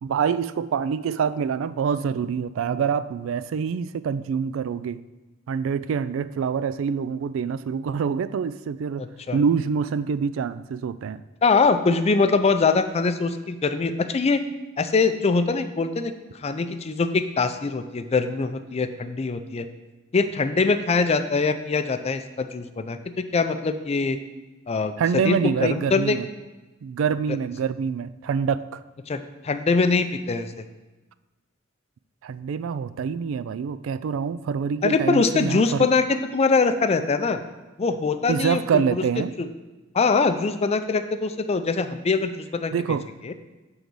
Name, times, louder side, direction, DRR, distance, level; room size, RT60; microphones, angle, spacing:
voice 1, 0.0-5.0 5.5-9.0 9.3-11.2 25.0-26.3 26.8-28.8 32.2-35.9 38.3-39.3 42.7-43.0, right 6 dB, 75° right, 15 dB, 0.3 m, -26 dB
voice 2, 9.0-9.4 11.4-14.4 14.8-16.1 16.4-19.7 20.1-24.2 24.7-24.9 25.2-26.2 29.1-30.5 34.8-37.4 37.8-39.5 39.9-42.7 43.2-43.3, left 4 dB, 30° left, 9 dB, 0.4 m, -23 dB
6.9 x 3.9 x 6.1 m, 1.2 s
head